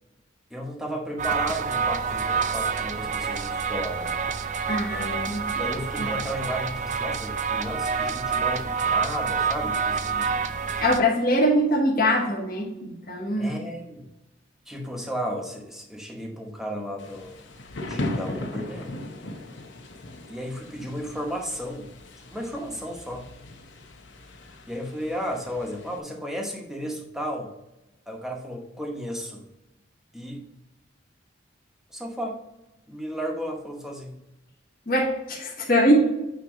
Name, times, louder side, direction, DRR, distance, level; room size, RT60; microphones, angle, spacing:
voice 1, 0.5-4.2 4.9-5.2 5.6-10.5 13.4-14.1 14.7-17.4 17.9-19.5 20.3-21.9 22.3-23.3 24.7-27.5 28.1-29.4 30.1-30.5 31.9-32.4 32.9-34.1, equal, ahead, 1 dB, 1.0 m, -34 dB
sound 1, 1.2-11.0, right 6 dB, 40° right, 0.4 m, -27 dB
voice 2, 4.7-5.5 6.0-6.1 10.8-13.5 34.9-36.0, equal, 50° left, -4 dB, 1.6 m, -23 dB
Thunder / Rain, 17.0-26.0, left 1 dB, 70° left, 0.8 m, -38 dB
9.0 x 3.0 x 5.0 m, 0.94 s
head